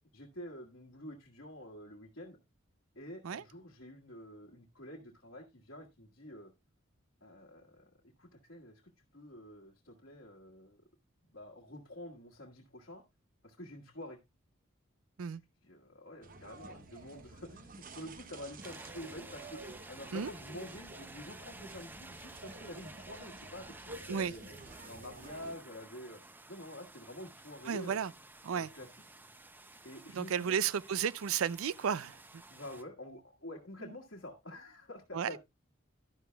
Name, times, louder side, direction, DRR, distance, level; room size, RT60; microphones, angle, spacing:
voice 1, 0.1-2.4 2.9-6.5 7.2-8.8 9.1-10.8 11.3-13.0 13.4-14.2 15.6-19.6 19.9-24.6 24.9-26.2 26.5-28.0 28.5-28.9 29.8-30.6 32.5-35.4, left 1 dB, 65° left, 1.6 m, -48 dB
sound 1, 16.2-25.6, right 2 dB, 40° right, 0.8 m, -51 dB
sound 2, 18.6-32.8, right 2 dB, 10° right, 0.5 m, -52 dB
voice 2, 27.7-28.1 28.5-28.7 30.1-32.4 35.1-35.3, right 7 dB, 90° right, 0.4 m, -33 dB
11.5 x 11.0 x 2.3 m
head